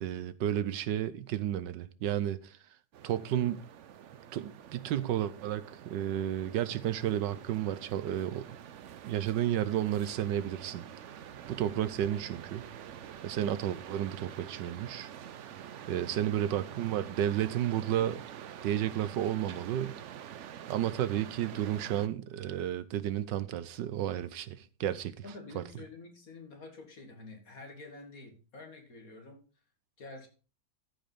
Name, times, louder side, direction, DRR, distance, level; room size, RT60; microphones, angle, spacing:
voice 1, 0.0-2.5 3.0-3.6 4.3-8.4 9.0-10.9 11.5-12.6 13.2-15.1 15.9-18.2 18.6-20.0 20.7-25.1 25.5-25.6, right 11 dB, 80° right, 1.4 m, -32 dB
sound 1, 2.9-22.1, right 9 dB, 65° right, 0.7 m, -47 dB
voice 2, 16.1-16.5 25.2-29.4 30.0-30.3, left 3 dB, 50° left, 2.7 m, -49 dB
14.0 x 5.2 x 5.6 m
omnidirectional pair, 1.9 m